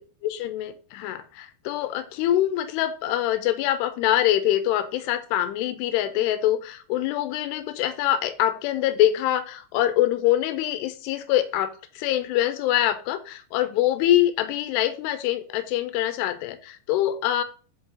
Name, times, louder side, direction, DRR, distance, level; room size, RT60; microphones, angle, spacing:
voice 1, 0.2-17.4, left 12 dB, 90° left, 12 dB, 2.7 m, -24 dB
5.5 x 5.4 x 3.9 m, 0.38 s
omnidirectional pair, 4.7 m